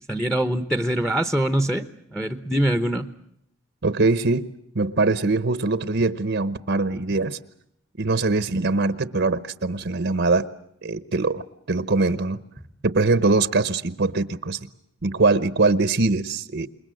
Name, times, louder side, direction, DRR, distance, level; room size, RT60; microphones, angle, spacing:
voice 1, 0.0-3.1, right 1 dB, 5° left, 10 dB, 1.0 m, -24 dB
voice 2, 3.8-7.4 8.0-10.5 10.8-11.4 11.7-12.4 12.8-14.6 15.0-16.7, right 3 dB, 60° right, 14 dB, 1.0 m, -22 dB
28.0 x 22.0 x 7.7 m, 0.72 s
head